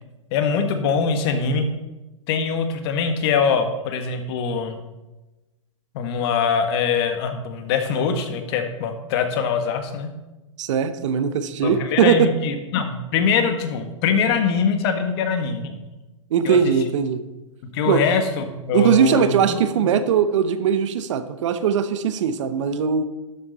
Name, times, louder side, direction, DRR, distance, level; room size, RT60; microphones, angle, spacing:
voice 1, 0.3-1.7 2.3-4.8 5.9-10.1 11.6-15.7 16.4-16.6 17.7-19.6, left 6 dB, 50° left, 7 dB, 1.5 m, -23 dB
voice 2, 10.6-12.3 16.3-17.2 17.9-18.0 18.7-23.0, right 7 dB, 60° right, 11 dB, 0.9 m, -20 dB
12.0 x 7.3 x 4.0 m, 1.1 s
hypercardioid pair, 120°, 17 cm